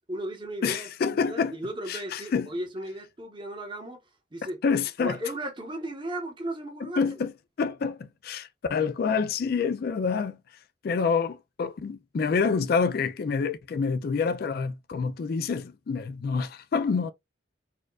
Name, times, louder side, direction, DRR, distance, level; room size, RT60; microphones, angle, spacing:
voice 1, 0.1-4.0 4.3-4.6 5.0-7.2, right 1 dB, 25° right, 1.1 m, -36 dB
voice 2, 0.6-1.5 1.9-2.5 4.6-5.2 6.8-7.3 7.6-10.4 10.8-17.1, left 5 dB, 55° left, 0.3 m, -27 dB
4.2 x 2.4 x 2.4 m
head